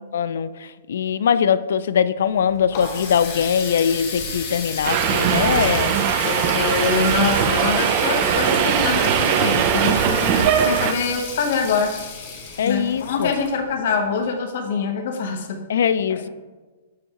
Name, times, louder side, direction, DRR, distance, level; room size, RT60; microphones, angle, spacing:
voice 1, 0.1-0.5 0.9-5.9 12.6-13.3 15.7-16.3, left 8 dB, 75° left, 16 dB, 0.3 m, -21 dB
Water tap faucet, 2.3-14.0, left 5 dB, 40° left, 1.6 m, -33 dB
Subway metro underground, 4.8-10.9, right 8 dB, 35° right, 0.5 m, -20 dB
voice 2, 6.2-11.9 12.6-15.6 16.1-16.3, left 5 dB, 55° left, 4 dB, 1.0 m, -24 dB
13.0 x 4.6 x 2.9 m, 1.3 s
hypercardioid pair, 170°, 0 cm